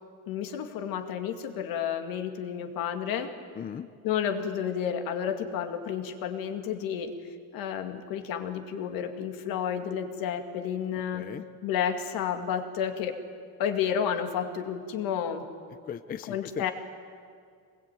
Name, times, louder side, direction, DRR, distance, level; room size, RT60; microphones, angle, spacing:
voice 1, 0.3-3.3 4.0-7.1 7.5-11.3 11.6-13.2 13.6-15.4 16.3-16.7, left 8 dB, 65° left, 6 dB, 2.5 m, -31 dB
voice 2, 3.5-3.9 11.1-11.4 15.8-16.7, left 8 dB, 25° left, 11 dB, 0.5 m, -37 dB
25.0 x 20.5 x 9.3 m, 2.2 s
cardioid pair, 150°, 39 cm